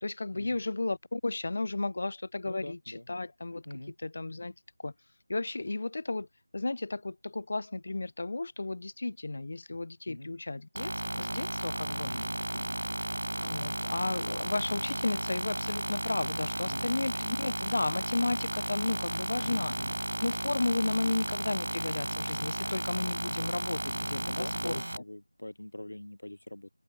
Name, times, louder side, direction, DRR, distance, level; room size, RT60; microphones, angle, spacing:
voice 1, 0.0-3.7 4.0-4.5 4.8-4.9 5.3-6.3 6.5-12.1 13.4-19.7 20.2-24.8, left 2 dB, 40° left, 0.3 m, -33 dB
voice 2, 2.4-3.0 3.6-3.9 10.1-10.3 12.0-12.8 16.7-16.9 19.4-20.0 24.2-26.7, left 1 dB, 75° left, 1.8 m, -43 dB
sound 1, 10.7-25.0, right 1 dB, 85° right, 0.4 m, -34 dB
figure-of-eight pair, 175°, 0 cm